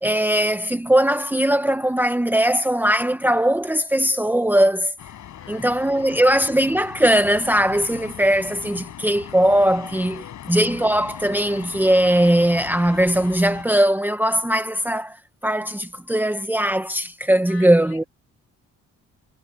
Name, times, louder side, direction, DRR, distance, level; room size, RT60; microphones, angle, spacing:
voice 1, 0.0-4.9 5.5-15.2 15.4-18.0, right 1 dB, 5° right, 1.3 m, -20 dB
sound 1, 5.0-13.6, left 11 dB, 70° left, 5.4 m, -39 dB
voice 2, 5.3-6.2 10.1-10.7 17.5-18.1, left 6 dB, 50° left, 5.2 m, -46 dB
cardioid pair, 90°, 30 cm